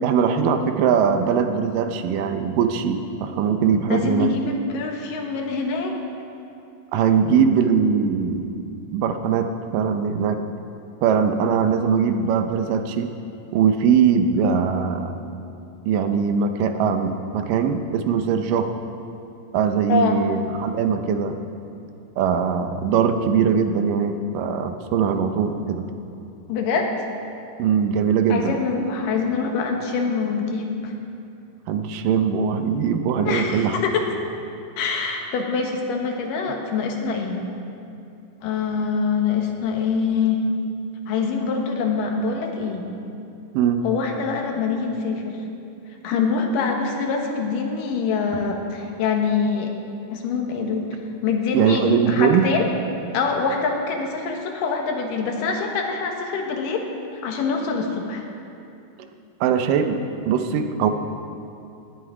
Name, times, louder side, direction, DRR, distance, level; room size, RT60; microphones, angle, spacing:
voice 1, 0.0-4.3 6.9-8.5 8.9-10.4 11.0-13.1 13.5-15.2 15.9-18.7 19.5-21.4 22.2-25.9 27.6-28.6 31.7-33.8 43.5-43.8 51.5-52.5 59.4-60.0 60.3-60.9, right 7 dB, 80° right, 7 dB, 2.3 m, -21 dB
voice 2, 3.9-5.9 19.9-20.2 26.5-26.9 28.3-30.9 33.2-34.1 34.8-37.4 38.4-40.4 41.1-42.9 43.8-45.4 46.0-49.7 50.1-50.9 51.2-52.7 53.1-56.9 57.2-58.2, left 5 dB, 75° left, 2 dB, 2.8 m, -24 dB
18.0 x 9.9 x 4.9 m, 2.6 s
omnidirectional pair, 3.9 m